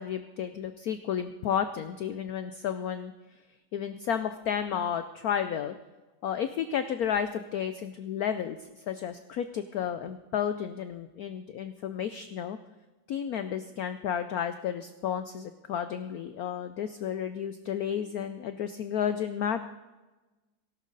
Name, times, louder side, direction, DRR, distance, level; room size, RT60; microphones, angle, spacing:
voice 1, 0.0-3.1 3.7-5.8 6.2-12.6 13.1-19.6, left 8 dB, 75° left, 10 dB, 0.9 m, -32 dB
18.0 x 11.5 x 3.9 m, 1.2 s
omnidirectional pair, 2.1 m